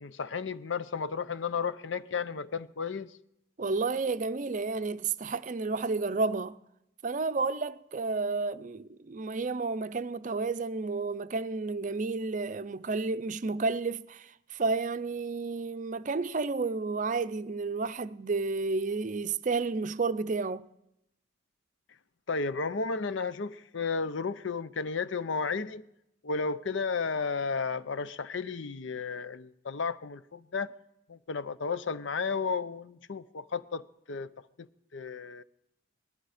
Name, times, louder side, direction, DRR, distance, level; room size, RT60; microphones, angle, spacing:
voice 1, 0.0-3.1 22.3-25.8 26.2-30.7 31.1-34.3 34.6-34.7 34.9-35.4, left 5 dB, 70° left, 0.6 m, -33 dB
voice 2, 3.6-6.6 7.0-20.7, right 4 dB, 40° right, 0.5 m, -31 dB
19.0 x 13.0 x 5.0 m
head